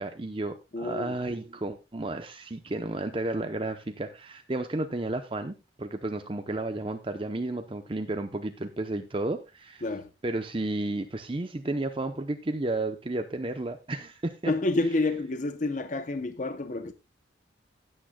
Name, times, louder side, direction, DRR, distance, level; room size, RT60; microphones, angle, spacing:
voice 1, 0.0-9.8 10.2-14.5, right 2 dB, 30° right, 0.7 m, -32 dB
voice 2, 0.7-1.1 9.8-10.1 14.5-16.9, left 2 dB, 45° left, 0.7 m, -29 dB
16.0 x 8.9 x 2.2 m
head